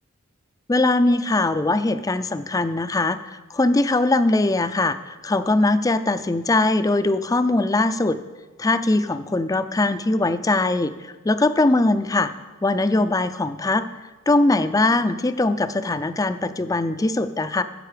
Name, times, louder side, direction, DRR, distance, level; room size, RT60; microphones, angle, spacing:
voice 1, 0.7-8.2 8.6-12.3 12.6-13.9 14.3-17.6, left 2 dB, 15° left, 11 dB, 0.4 m, -21 dB
14.0 x 7.4 x 5.0 m, 1.3 s
head